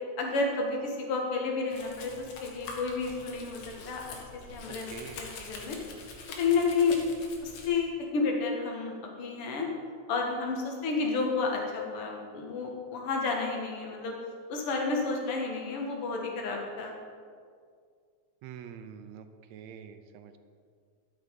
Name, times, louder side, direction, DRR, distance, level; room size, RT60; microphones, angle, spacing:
voice 1, 0.2-4.0 4.5-4.9 5.2-5.8 6.4-7.0 7.4-9.7 10.1-14.1 14.5-16.9, left 4 dB, 55° left, 0 dB, 2.1 m, -31 dB
Domestic sounds home sounds, 1.7-7.7, left 3 dB, 90° left, 2.7 m, -45 dB
voice 2, 4.7-5.2 18.4-20.4, right 8 dB, 80° right, 9 dB, 1.8 m, -46 dB
12.0 x 6.4 x 5.2 m, 2.1 s
omnidirectional pair, 3.3 m